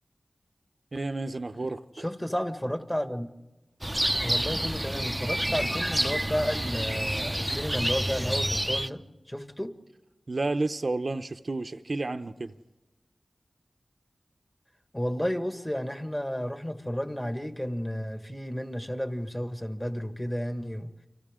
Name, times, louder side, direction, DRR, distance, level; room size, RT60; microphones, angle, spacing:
voice 1, 0.9-2.0 10.3-12.5, right 2 dB, 60° right, 0.7 m, -31 dB
voice 2, 2.0-3.3 4.2-9.7 14.9-20.9, equal, 15° left, 1.8 m, -32 dB
sound 1, 3.8-8.9, right 1 dB, 15° right, 0.7 m, -28 dB
29.5 x 26.0 x 3.8 m
wide cardioid pair, 50°, 0 cm